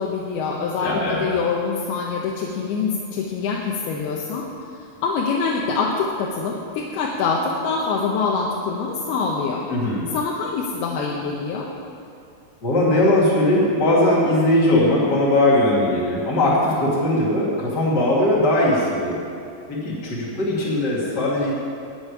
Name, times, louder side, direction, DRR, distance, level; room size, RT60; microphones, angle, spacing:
voice 1, 0.0-4.5 5.0-9.7 10.1-11.7, left 4 dB, 85° left, -2 dB, 2.9 m, -25 dB
voice 2, 0.8-1.2 9.7-10.1 12.6-19.2 19.7-21.5, left 1 dB, 30° left, -7 dB, 2.3 m, -19 dB
12.0 x 6.8 x 9.5 m, 2.5 s
omnidirectional pair, 4.4 m